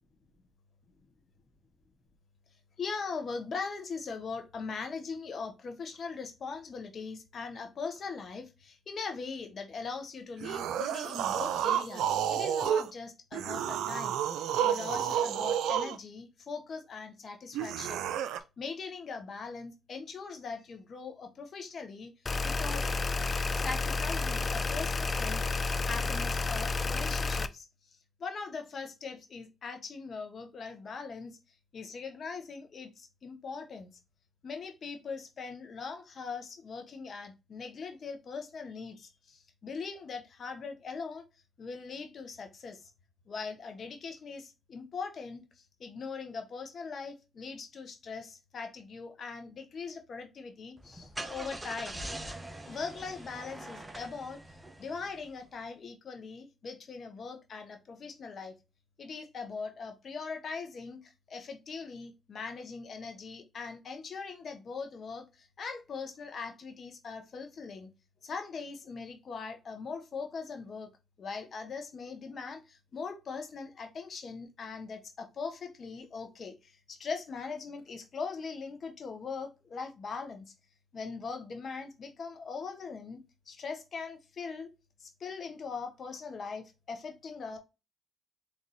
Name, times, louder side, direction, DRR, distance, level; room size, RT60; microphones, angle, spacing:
voice 1, 2.8-18.1 18.6-22.1 22.4-22.8 23.5-27.7 28.2-31.4 31.7-33.9 34.4-41.2 41.6-42.8 43.3-45.4 45.8-52.0 52.7-54.4 54.8-58.5 59.0-67.9 68.2-70.9 71.2-80.5 80.9-83.2 83.5-84.7 85.0-87.6, left 5 dB, 55° left, 1.2 m, -41 dB
sound 1, 10.4-12.9 13.3-16.0 17.5-18.4, right 9 dB, 80° right, 0.4 m, -30 dB
sound 2, 22.3-27.5, left 3 dB, 40° left, 0.4 m, -31 dB
Car / Engine starting, 50.8-55.4, right 1 dB, 15° right, 1.0 m, -43 dB
4.1 x 3.5 x 3.1 m
supercardioid pair, 60°, 0 cm